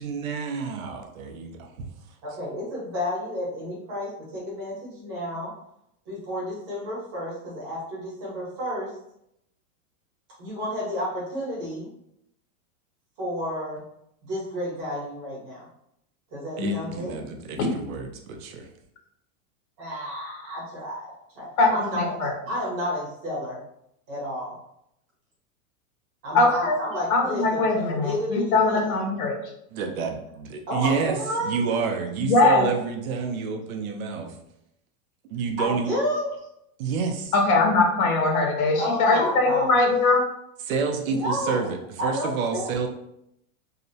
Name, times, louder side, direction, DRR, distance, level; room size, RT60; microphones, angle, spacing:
voice 1, 0.0-1.9 16.6-18.7 29.7-34.3 35.3-35.9 36.8-37.3 40.6-42.9, right 5 dB, 70° right, 3 dB, 0.6 m, -29 dB
voice 2, 2.2-5.5 6.1-8.9 10.4-11.9 13.2-13.8 14.2-15.7 16.3-17.2 19.8-21.1 21.3-22.1 22.5-23.6 24.1-24.6 26.2-28.8 30.7-31.5 35.6-36.3 38.8-39.8 41.1-41.7 42.0-42.7, equal, 30° right, -6 dB, 1.0 m, -31 dB
voice 3, 21.6-22.3 26.3-26.8 27.1-29.4 32.2-32.7 37.3-40.2, left 3 dB, 80° left, 2 dB, 0.9 m, -21 dB
2.8 x 2.0 x 2.7 m, 0.77 s
supercardioid pair, 180°, 43 cm